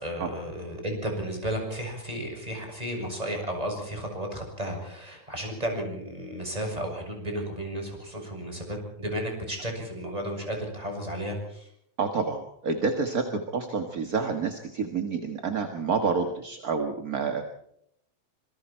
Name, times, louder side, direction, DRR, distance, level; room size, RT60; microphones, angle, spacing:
voice 1, 0.0-11.7, equal, 10° right, 2 dB, 6.9 m, -33 dB
voice 2, 12.0-17.4, right 4 dB, 35° right, 5 dB, 1.7 m, -28 dB
26.5 x 23.0 x 4.5 m, 0.73 s
omnidirectional pair, 3.3 m